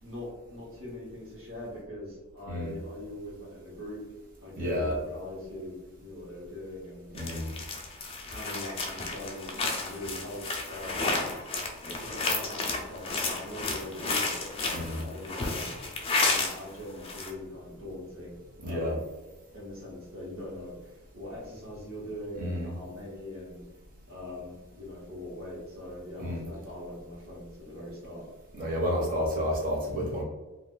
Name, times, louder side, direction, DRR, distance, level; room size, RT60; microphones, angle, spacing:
voice 1, 0.0-4.0 4.4-7.1 8.3-10.4 10.7-11.1 11.9-15.7 16.2-19.0 19.5-23.6 24.1-28.3, left 1 dB, 65° right, -6 dB, 1.1 m, -42 dB
voice 2, 4.6-5.0 7.1-7.5 14.7-15.0 18.6-19.0 22.4-22.7 26.2-26.4 28.5-30.2, equal, 40° right, -2 dB, 0.8 m, -30 dB
sound 1, 7.2-16.6 16.9-17.3, left 3 dB, 25° left, 0.4 m, -32 dB
2.5 x 2.3 x 3.7 m, 1.1 s
head